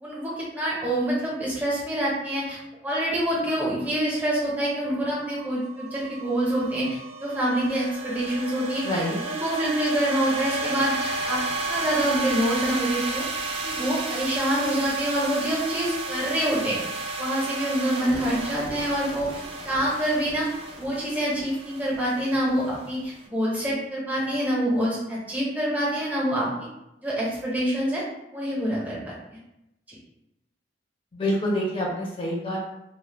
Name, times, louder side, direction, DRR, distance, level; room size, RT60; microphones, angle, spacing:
voice 1, 0.0-11.4 11.7-13.2 13.6-16.8 17.2-19.3 19.6-20.5 20.8-26.5 27.0-28.0 28.3-29.1 29.9-30.0, right 1 dB, 10° right, -6 dB, 0.7 m, -26 dB
sound 1, 4.9-23.2, right 3 dB, 30° right, 0.3 m, -33 dB
voice 2, 8.8-9.2 31.1-32.6, equal, 30° left, -3 dB, 0.6 m, -26 dB
2.1 x 2.1 x 3.3 m, 0.88 s
head